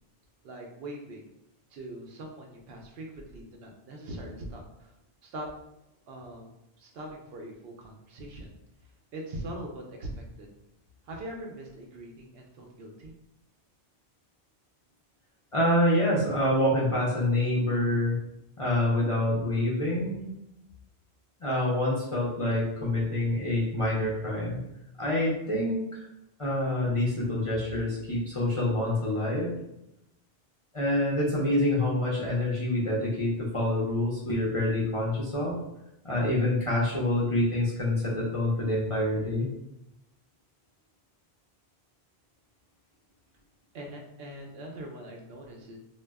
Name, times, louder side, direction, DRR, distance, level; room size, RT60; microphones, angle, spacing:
voice 1, 0.4-1.3 1.7-4.9 5.2-5.5 6.1-8.5 9.1-10.5 11.1-13.1 43.7-45.8, right 1 dB, 70° right, 1 dB, 0.8 m, -42 dB
voice 2, 15.5-18.2 18.6-20.3 21.4-24.6 25.0-26.0 26.4-29.5 30.7-35.6 36.0-39.5, left 1 dB, 40° left, -6 dB, 0.5 m, -26 dB
2.2 x 2.1 x 3.4 m, 0.85 s
omnidirectional pair, 1.1 m